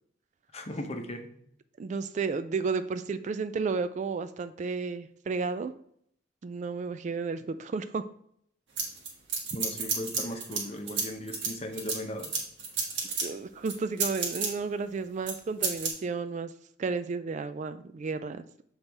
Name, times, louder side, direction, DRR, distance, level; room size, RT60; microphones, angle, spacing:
voice 1, 0.5-1.3 9.5-12.3, left 1 dB, 35° left, 5 dB, 0.8 m, -37 dB
voice 2, 1.8-5.7 6.4-8.0 13.1-16.5 16.8-18.5, right 4 dB, 40° right, 11 dB, 0.3 m, -32 dB
sound 1, 8.8-10.6 10.9-13.2 13.7-14.5 15.3-15.4 15.6-15.9, right 5 dB, 85° right, 1.5 m, -30 dB
7.1 x 4.0 x 3.4 m, 0.67 s
head